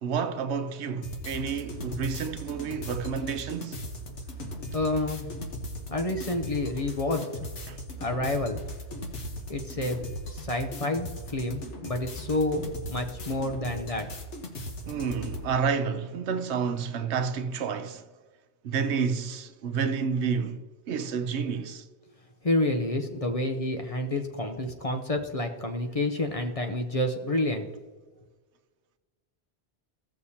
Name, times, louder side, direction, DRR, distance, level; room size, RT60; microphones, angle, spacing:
voice 1, 0.0-3.8 7.7-7.8 14.8-18.0 18.6-21.8, right 6 dB, 75° right, 0.9 m, -30 dB
sound 1, 1.0-15.5, equal, 85° left, 1.5 m, -38 dB
voice 2, 4.7-5.4 5.9-7.5 8.0-8.6 9.5-10.0 10.3-14.1 22.4-27.7, left 1 dB, 35° left, 0.7 m, -29 dB
16.0 x 6.6 x 2.8 m
omnidirectional pair, 1.2 m